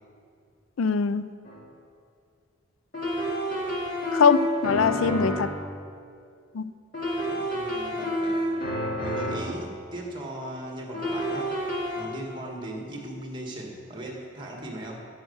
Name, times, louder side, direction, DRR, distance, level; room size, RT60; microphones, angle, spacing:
voice 1, 0.8-1.3 4.1-5.5 6.5-6.7, left 5 dB, 85° left, 14 dB, 0.4 m, -22 dB
sound 1, 1.5-1.6 2.9-5.6 6.9-9.6 10.9-12.0, equal, 45° left, 2.3 m, -29 dB
voice 2, 7.3-8.7 9.0-11.6 11.9-15.0, right 1 dB, 25° right, 0 dB, 1.7 m, -38 dB
11.0 x 6.6 x 7.9 m, 2.3 s
head